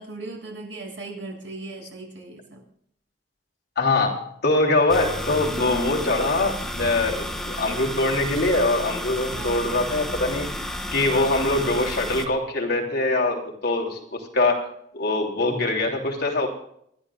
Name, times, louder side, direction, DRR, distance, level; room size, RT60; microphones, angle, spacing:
voice 1, 0.0-2.6 9.3-9.7, right 2 dB, 85° right, 0 dB, 7.2 m, -38 dB
voice 2, 3.8-10.5 10.9-14.7 14.9-16.5, left 2 dB, 55° left, -1 dB, 3.2 m, -23 dB
sound 1, 4.9-12.3, left 1 dB, 5° left, 1.2 m, -31 dB
28.5 x 11.5 x 2.5 m, 0.70 s
head